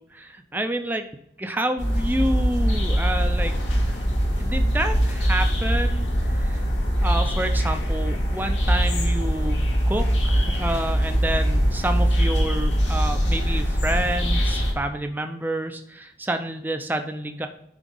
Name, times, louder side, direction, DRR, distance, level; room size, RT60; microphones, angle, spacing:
voice 1, 0.1-1.1 1.4-3.5 3.9-4.0 4.4-6.7 7.0-17.5, right 1 dB, 10° right, 6 dB, 0.6 m, -29 dB
sound 1, 1.8-14.7, equal, 85° left, 2.4 m, -22 dB
10.0 x 4.1 x 5.4 m, 0.73 s
head